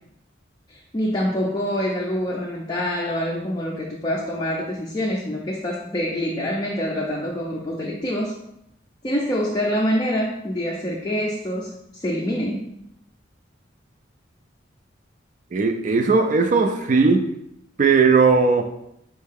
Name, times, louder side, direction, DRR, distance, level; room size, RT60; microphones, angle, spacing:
voice 1, 0.7-8.4 9.0-12.7, equal, 20° left, -3 dB, 0.4 m, -26 dB
voice 2, 15.5-17.2 17.8-18.6, right 4 dB, 40° right, 6 dB, 0.4 m, -17 dB
4.2 x 2.7 x 3.5 m, 0.77 s
head